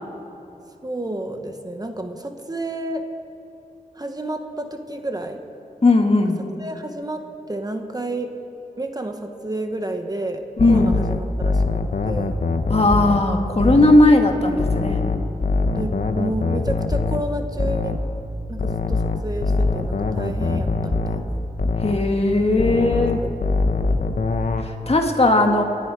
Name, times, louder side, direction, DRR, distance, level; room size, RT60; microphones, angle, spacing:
voice 1, 0.8-3.0 4.0-5.4 6.6-7.2 7.5-8.3 8.8-10.4 10.7-11.6 12.0-12.3 15.7-18.0 18.5-21.4 22.9-24.0, right 1 dB, 25° right, 5 dB, 1.3 m, -30 dB
voice 2, 5.8-6.4 10.6-11.0 12.7-15.0 15.8-16.0 21.8-23.2 24.6-25.6, left 2 dB, 40° left, 3 dB, 1.7 m, -17 dB
sound 1, 10.6-14.1 14.6-18.1 18.6-22.1 22.6-24.6, left 3 dB, 60° left, 1.0 m, -23 dB
28.5 x 10.5 x 4.8 m, 2.9 s
wide cardioid pair, 75°, 16 cm